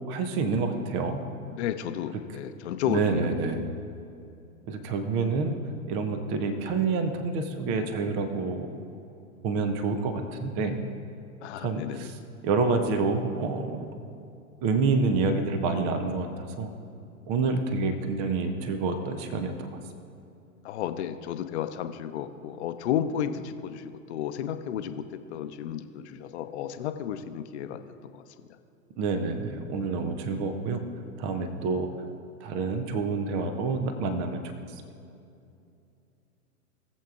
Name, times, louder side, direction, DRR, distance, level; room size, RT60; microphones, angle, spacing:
voice 1, 0.1-1.2 2.9-3.6 4.7-5.6 5.9-8.7 9.4-10.8 11.6-12.1 12.4-13.9 14.6-16.7 17.3-19.7 29.0-30.8 31.2-31.9 32.4-34.5, right 4 dB, 15° right, 8 dB, 0.4 m, -28 dB
voice 2, 1.5-3.3 11.4-12.1 20.6-28.2, left 9 dB, 50° left, 9 dB, 0.7 m, -33 dB
20.0 x 7.5 x 2.4 m, 2.6 s
figure-of-eight pair, 105°, 45 cm